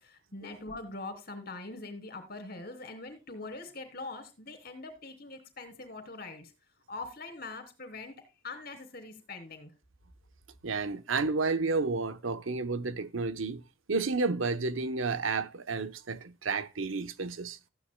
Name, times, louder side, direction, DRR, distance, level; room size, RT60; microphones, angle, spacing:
voice 1, 0.0-6.5 6.9-9.7, left 3 dB, 50° left, 3.1 m, -43 dB
voice 2, 10.6-13.6 13.9-17.6, right 4 dB, 85° right, 0.9 m, -31 dB
15.0 x 9.6 x 2.2 m
head